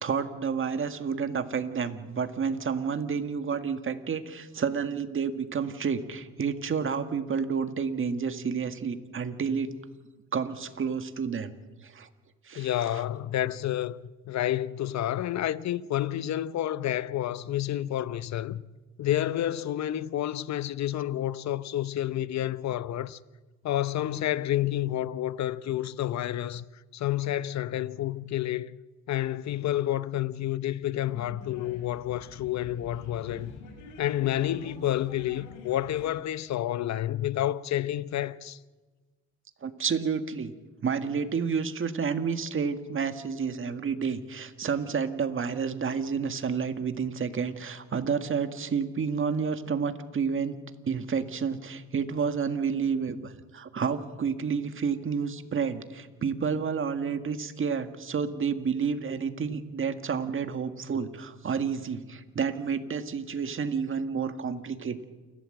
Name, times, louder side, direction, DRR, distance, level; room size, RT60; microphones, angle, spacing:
voice 1, 0.0-9.7 10.3-11.5 11.8-12.1 12.5-13.0 39.6-40.5 40.8-50.6 50.9-65.0, right 6 dB, 45° right, 1.8 m, -30 dB
voice 2, 12.6-14.0 14.3-18.6 19.0-23.2 23.6-26.6 26.9-28.8 29.1-33.5 34.0-38.6, left 12 dB, 65° left, 0.8 m, -29 dB
sound 1, 31.1-36.1, left 3 dB, 85° left, 4.5 m, -47 dB
29.0 x 12.5 x 7.8 m
cardioid pair, 90°, 30 cm